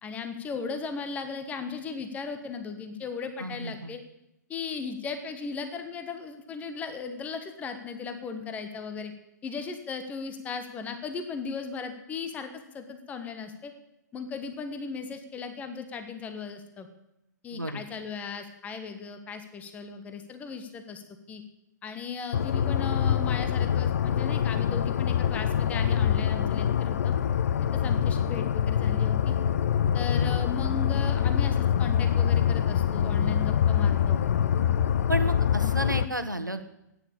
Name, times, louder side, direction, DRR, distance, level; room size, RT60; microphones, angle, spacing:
voice 1, 0.0-4.0 4.5-9.1 9.4-13.7 14.1-16.9 17.4-21.0 21.3-21.4 21.8-27.1 27.6-29.4 29.9-34.2 35.6-35.7, left 5 dB, 15° left, 8 dB, 1.3 m, -37 dB
voice 2, 3.4-3.9 17.5-17.8 30.1-30.3 35.1-36.6, right 1 dB, 90° right, 8 dB, 1.5 m, -32 dB
sound 1, 22.3-36.0, left 9 dB, 50° left, 0.7 m, -25 dB
14.0 x 9.9 x 8.5 m, 0.86 s
figure-of-eight pair, 115°, 10 cm